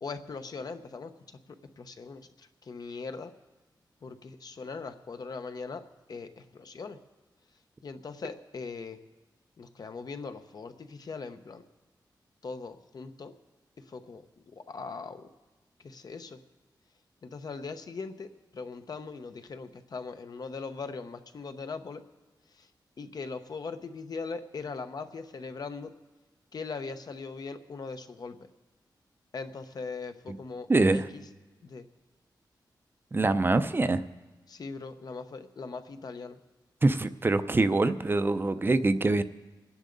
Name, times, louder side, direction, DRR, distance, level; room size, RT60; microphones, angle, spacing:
voice 1, 0.0-1.4 1.8-3.3 4.0-5.8 6.1-7.0 7.8-9.0 9.6-11.7 12.4-13.3 13.9-15.3 15.8-16.4 17.2-22.0 22.5-22.7 23.0-25.9 26.5-28.4 29.3-31.2 31.6-31.9 34.5-36.4, left 4 dB, 55° left, 8 dB, 0.9 m, -40 dB
voice 2, 30.7-31.0 33.1-34.0 36.8-39.2, right 2 dB, 30° right, 11 dB, 0.6 m, -24 dB
26.5 x 10.0 x 4.0 m, 1.2 s
wide cardioid pair, 105°, 8 cm